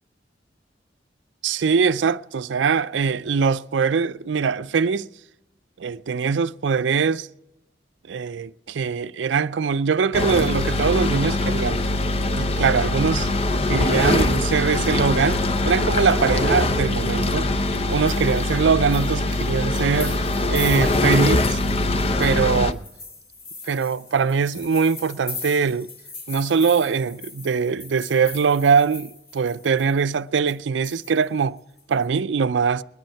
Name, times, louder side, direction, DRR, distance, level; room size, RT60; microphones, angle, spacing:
voice 1, 1.4-5.1 5.8-7.3 8.1-11.9 12.3-13.3 13.7-17.5 17.9-20.2 20.5-21.6 22.2-22.8 23.7-25.9 26.3-31.6 31.9-32.8, right 5 dB, 85° right, 0.4 m, -22 dB
sound 1, 10.1-22.7, left 2 dB, 35° left, 0.6 m, -22 dB
sound 2, 17.9-30.1 30.5-30.6 30.8-32.1, left 3 dB, 75° left, 6.1 m, -40 dB
21.0 x 10.5 x 4.5 m
head